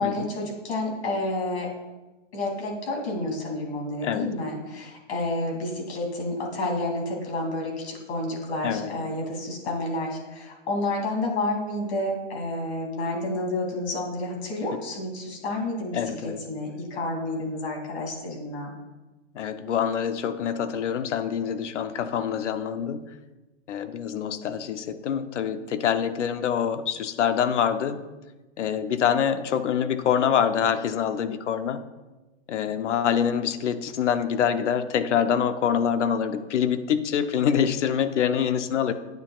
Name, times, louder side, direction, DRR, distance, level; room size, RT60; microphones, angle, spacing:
voice 1, 0.0-1.7 2.3-18.7, left 2 dB, 65° left, 0 dB, 2.9 m, -30 dB
voice 2, 8.6-8.9 15.9-16.4 19.3-23.0 23.7-28.0 28.6-31.8 32.5-38.9, left 8 dB, 85° left, 10 dB, 0.8 m, -25 dB
9.2 x 8.9 x 2.4 m, 1.1 s
hypercardioid pair, 155°, 35 cm